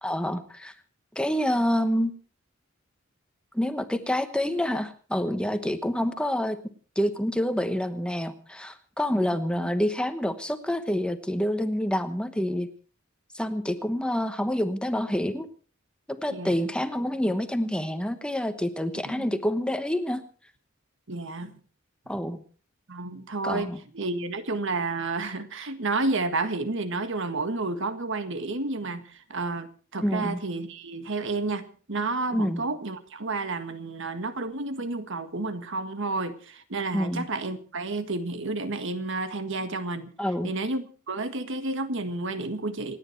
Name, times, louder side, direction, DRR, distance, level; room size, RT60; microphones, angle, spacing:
voice 1, 0.0-0.7 1.1-2.1 3.5-6.6 7.0-12.7 13.3-15.5 16.1-20.2 22.1-22.4 23.4-23.8 30.0-30.4 32.3-32.6 36.9-37.3 40.2-40.5, equal, 5° left, 9 dB, 1.1 m, -27 dB
voice 2, 16.3-16.6 19.0-19.3 21.1-21.5 22.9-40.1 40.4-43.0, right 3 dB, 65° right, 10 dB, 1.7 m, -31 dB
28.0 x 9.9 x 4.5 m, 0.39 s
head